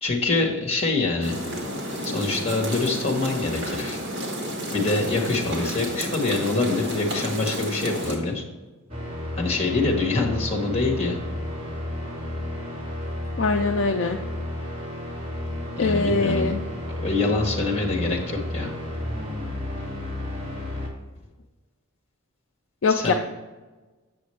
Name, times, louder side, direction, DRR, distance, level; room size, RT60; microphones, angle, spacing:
voice 1, 0.0-1.4 2.0-4.0 4.7-8.4 9.4-11.2 15.8-18.7 22.9-23.1, left 3 dB, 30° left, 0 dB, 1.3 m, -25 dB
sound 1, 1.2-8.2, equal, 55° right, 1.6 m, -31 dB
sound 2, 8.9-20.9, left 1 dB, 25° right, 1.7 m, -32 dB
voice 2, 13.4-14.2 15.8-16.6 22.8-23.1, left 4 dB, 55° left, 4 dB, 0.4 m, -22 dB
7.6 x 6.9 x 3.2 m, 1.2 s
head